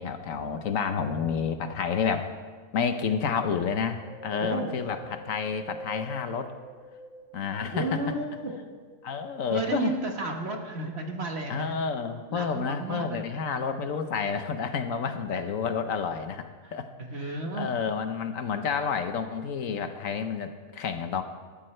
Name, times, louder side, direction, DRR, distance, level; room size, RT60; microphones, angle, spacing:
voice 1, 0.0-2.3 2.7-6.5 7.3-8.2 9.0-9.9 11.5-16.9 17.2-21.2, left 6 dB, 75° left, 8 dB, 1.3 m, -30 dB
Wind, 4.0-7.6 8.1-9.3 9.9-10.0, equal, 65° right, 1.8 m, -44 dB
voice 2, 4.4-5.0 7.7-8.6 9.5-11.7 12.3-13.4 17.0-17.7, right 2 dB, 50° right, 3 dB, 1.6 m, -33 dB
19.0 x 14.0 x 3.3 m, 1.5 s
omnidirectional pair, 1.4 m